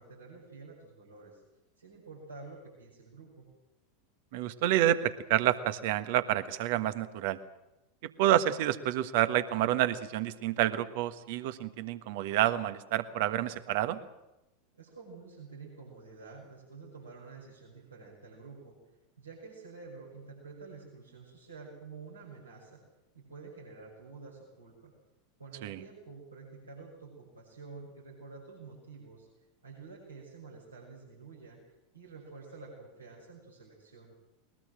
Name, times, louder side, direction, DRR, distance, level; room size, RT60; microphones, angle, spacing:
voice 1, 0.0-1.4 1.8-3.5 14.7-18.8 19.2-22.8 23.1-24.9 25.4-29.3 29.6-31.6 31.9-34.1, right 4 dB, 85° right, -6 dB, 6.3 m, -49 dB
voice 2, 4.3-7.4 8.2-14.0 25.6-25.8, right 12 dB, 55° right, 11 dB, 1.4 m, -28 dB
21.5 x 20.0 x 7.6 m, 0.96 s
figure-of-eight pair, 85°, 0 cm